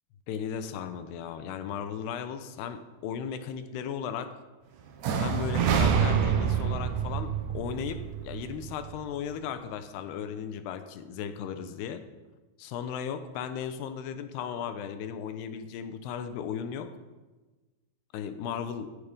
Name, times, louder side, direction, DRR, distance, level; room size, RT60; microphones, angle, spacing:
voice 1, 0.3-4.3 5.2-12.0 12.6-16.9 18.1-18.9, left 8 dB, 80° left, 9 dB, 2.7 m, -36 dB
sound 1, 5.0-8.9, right 7 dB, 90° right, 1.6 m, -27 dB
16.5 x 10.0 x 5.4 m, 1.2 s
omnidirectional pair, 5.1 m